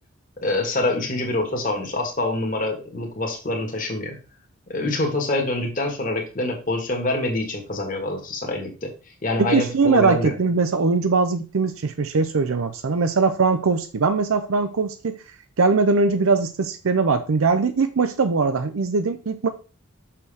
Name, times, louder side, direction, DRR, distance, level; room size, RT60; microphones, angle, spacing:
voice 1, 0.4-4.2 4.7-8.9 9.2-10.3, left 2 dB, 40° left, 2 dB, 1.5 m, -25 dB
voice 2, 9.4-15.2 15.6-19.5, right 4 dB, 75° right, 9 dB, 0.6 m, -21 dB
6.3 x 5.7 x 3.4 m, 0.34 s
head